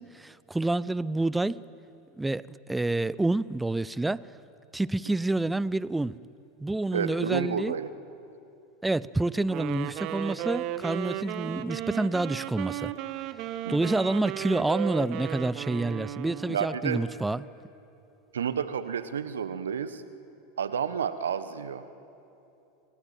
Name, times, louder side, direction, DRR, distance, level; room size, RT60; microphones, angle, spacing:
voice 1, 0.0-1.6 2.2-4.3 4.7-6.2 6.6-7.7 8.8-12.9 13.7-17.4, right 2 dB, 10° right, 0.5 m, -28 dB
voice 2, 6.9-7.9 13.6-13.9 16.5-17.0 18.3-20.0 20.6-21.8, right 7 dB, 75° right, 1.2 m, -30 dB
Wind instrument woodwind instrument, 9.5-16.7, right 13 dB, 50° right, 1.1 m, -35 dB
26.5 x 17.5 x 9.1 m
figure-of-eight pair, 85°, 0 cm